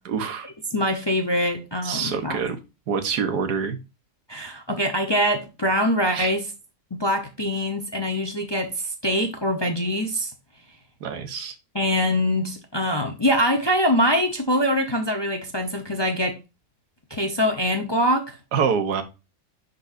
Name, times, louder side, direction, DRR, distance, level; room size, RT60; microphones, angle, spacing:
voice 1, 0.1-0.5 1.8-2.6 2.9-3.8 6.1-6.3 11.0-11.6 18.5-19.0, right 6 dB, 85° right, 1.6 m, -26 dB
voice 2, 0.7-2.4 4.3-6.4 7.0-10.3 11.7-16.4 17.1-18.4, equal, 20° left, 0.7 m, -23 dB
10.5 x 4.2 x 2.6 m
omnidirectional pair, 1.7 m